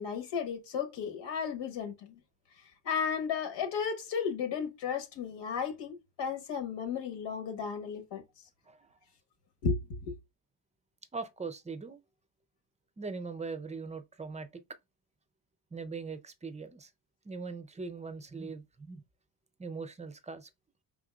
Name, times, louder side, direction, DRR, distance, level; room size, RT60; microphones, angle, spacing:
voice 1, 0.0-2.2 2.8-8.2 9.6-10.1, left 6 dB, 70° left, 1.3 m, -34 dB
voice 2, 11.1-12.0 13.0-14.5 15.7-16.9 17.2-19.0 19.6-20.5, right 4 dB, 15° right, 0.4 m, -41 dB
4.9 x 3.5 x 2.3 m
cardioid pair, 135°, 45 cm